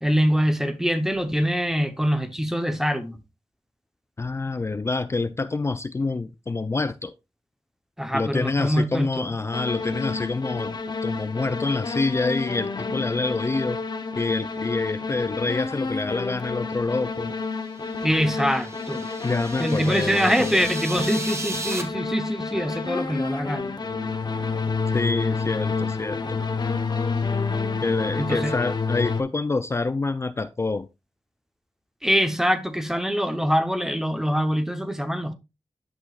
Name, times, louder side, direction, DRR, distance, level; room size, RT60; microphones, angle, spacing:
voice 1, 0.0-3.2 8.0-9.3 18.0-19.0 19.6-23.7 28.2-28.5 32.0-35.3, equal, 5° right, 0.8 m, -24 dB
voice 2, 4.2-7.1 8.1-13.8 14.2-17.3 19.2-20.7 24.9-26.4 27.8-30.9, left 3 dB, 25° left, 0.4 m, -27 dB
sound 1, 9.5-29.2, left 4 dB, 45° left, 1.0 m, -29 dB
sound 2, 17.7-21.8, right 2 dB, 25° right, 1.2 m, -36 dB
11.0 x 6.1 x 2.4 m
wide cardioid pair, 130°, 10 cm